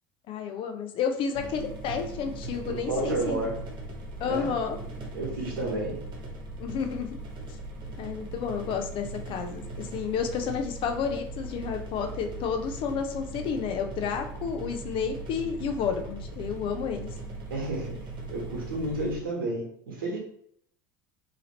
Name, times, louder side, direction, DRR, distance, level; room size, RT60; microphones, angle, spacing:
voice 1, 0.3-3.4 4.2-4.8 6.6-7.1 8.0-17.1, left 6 dB, 50° left, 5 dB, 0.6 m, -31 dB
sound 1, 1.3-19.2, right 2 dB, 45° right, 1.1 m, -39 dB
voice 2, 2.7-3.6 4.2-4.5 5.1-6.0 12.0-12.1 17.5-20.2, right 2 dB, 85° right, -1 dB, 1.0 m, -31 dB
2.9 x 2.7 x 2.9 m, 0.67 s
hypercardioid pair, 80°, 11 cm